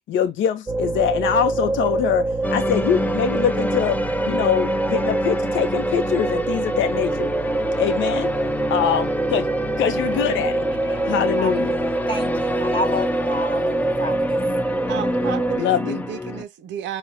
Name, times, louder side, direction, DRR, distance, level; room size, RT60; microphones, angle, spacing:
voice 1, 0.1-4.0 4.2-7.3 7.8-8.3 8.7-9.5 9.8-10.6 11.0-11.8 15.6-16.0, left 9 dB, 75° left, 0.6 m, -23 dB
sound 1, 0.7-15.6, right 2 dB, 15° right, 0.8 m, -25 dB
sound 2, 2.4-16.4, left 2 dB, 10° left, 0.4 m, -28 dB
voice 2, 10.7-11.1 11.4-14.4, left 1 dB, 25° left, 1.0 m, -31 dB
voice 3, 14.9-17.0, right 10 dB, 65° right, 0.5 m, -33 dB
4.6 x 2.1 x 2.7 m
cardioid pair, 90°, 20 cm